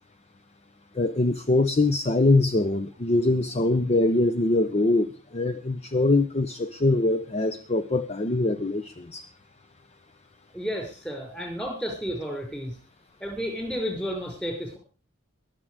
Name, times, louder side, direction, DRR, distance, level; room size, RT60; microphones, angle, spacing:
voice 1, 1.0-9.2, left 2 dB, 30° left, 11 dB, 0.6 m, -23 dB
voice 2, 10.5-12.7 13.2-14.8, equal, 5° left, 2 dB, 5.6 m, -32 dB
22.0 x 7.5 x 4.9 m, 0.35 s
head